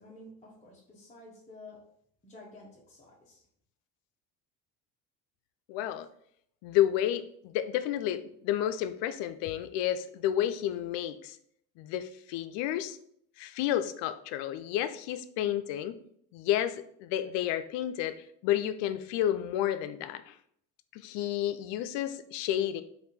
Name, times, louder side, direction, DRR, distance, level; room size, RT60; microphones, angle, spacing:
voice 1, 0.0-1.8 2.2-3.4, left 2 dB, 15° left, -5 dB, 0.8 m, -51 dB
voice 2, 5.7-6.1 6.6-11.4 11.8-13.0 13.4-16.0 16.3-20.4 20.9-22.8, left 11 dB, 75° left, 11 dB, 0.5 m, -31 dB
3.5 x 2.6 x 4.1 m, 0.67 s
cardioid pair, 105°, 43 cm